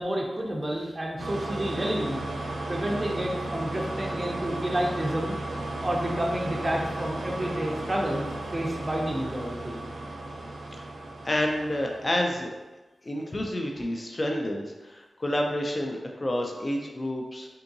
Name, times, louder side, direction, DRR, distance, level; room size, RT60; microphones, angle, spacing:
voice 1, 0.0-2.2 2.7-5.4 5.8-9.8, right 1 dB, 25° right, -1 dB, 0.6 m, -30 dB
sound 1, 1.2-12.4, right 2 dB, 80° right, 0.4 m, -35 dB
voice 2, 11.2-12.5 13.0-17.5, left 1 dB, 35° left, 1 dB, 0.4 m, -29 dB
3.6 x 2.7 x 2.6 m, 1.1 s
cardioid pair, 65°, 0 cm